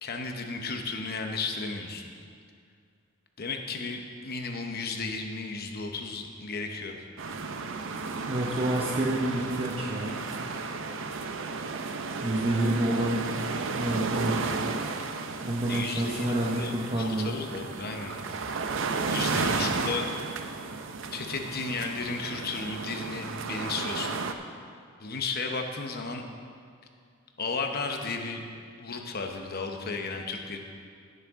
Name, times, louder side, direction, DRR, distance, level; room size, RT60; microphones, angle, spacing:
voice 1, 0.0-2.1 3.4-7.0 15.7-18.2 19.1-20.1 21.1-24.2 25.0-26.2 27.4-28.4 28.8-30.6, left 4 dB, 50° left, 4 dB, 0.9 m, -34 dB
sound 1, 7.2-24.3, right 4 dB, 65° right, 0.6 m, -33 dB
voice 2, 8.2-10.5 12.2-13.2 13.7-14.6 15.4-17.3, right 1 dB, 30° right, -3 dB, 0.8 m, -28 dB
17.5 x 6.7 x 3.7 m, 2.2 s
head